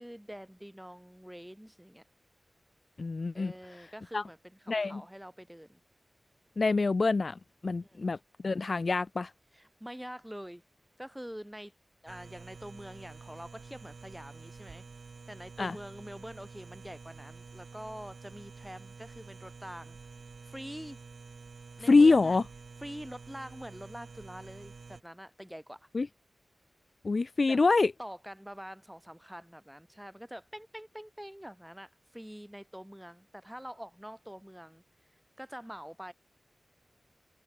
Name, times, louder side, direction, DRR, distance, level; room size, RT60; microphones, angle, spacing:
voice 1, 0.0-2.0 3.3-4.4 4.6-5.8 7.8-8.1 9.5-10.6 11.0-11.7 12.0-14.8 15.3-20.0 20.5-21.0 21.8-22.4 22.8-25.9 27.5-27.6 28.0-34.8 35.4-36.1, equal, 5° right, 2.4 m, -45 dB
voice 2, 3.0-3.5 4.1-4.2 4.7-5.0 6.6-8.2 8.4-9.3 15.6-15.8 21.9-22.4 25.9-26.1 27.0-27.9, left 3 dB, 50° left, 0.3 m, -25 dB
sound 1, 12.1-25.0, right 4 dB, 70° right, 2.6 m, -49 dB
wide cardioid pair, 100°, 0 cm